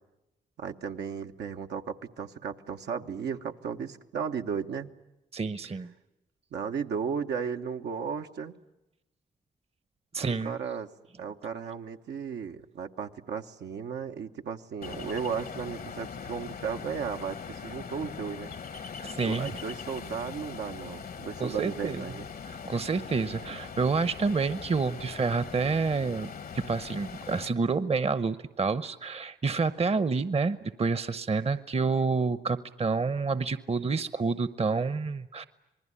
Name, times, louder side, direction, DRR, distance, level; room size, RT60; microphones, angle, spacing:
voice 1, 0.6-4.9 6.5-8.6 10.2-10.9 11.2-18.5 19.2-22.3 23.5-23.6, right 6 dB, 85° right, 4 dB, 1.1 m, -35 dB
voice 2, 5.3-5.9 10.1-10.5 19.0-19.5 21.4-22.0 22.5-35.5, right 4 dB, 35° right, 14 dB, 0.9 m, -28 dB
Ocean, 14.8-27.5, left 6 dB, 60° left, 1.1 m, -41 dB
27.0 x 20.5 x 9.9 m, 0.95 s
cardioid pair, 60°, 17 cm